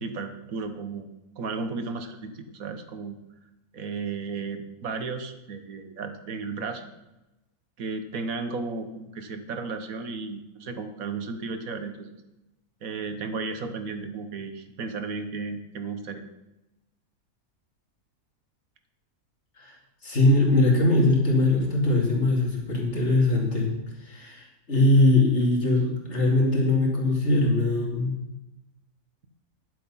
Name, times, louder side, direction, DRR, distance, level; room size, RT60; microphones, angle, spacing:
voice 1, 0.0-1.1 1.4-3.2 3.7-6.8 7.8-12.1 12.8-16.2, right 4 dB, 65° right, 8 dB, 1.5 m, -34 dB
voice 2, 20.0-23.8 24.0-28.1, left 2 dB, 45° left, -2 dB, 3.0 m, -21 dB
11.0 x 8.0 x 5.6 m, 0.97 s
omnidirectional pair, 1.6 m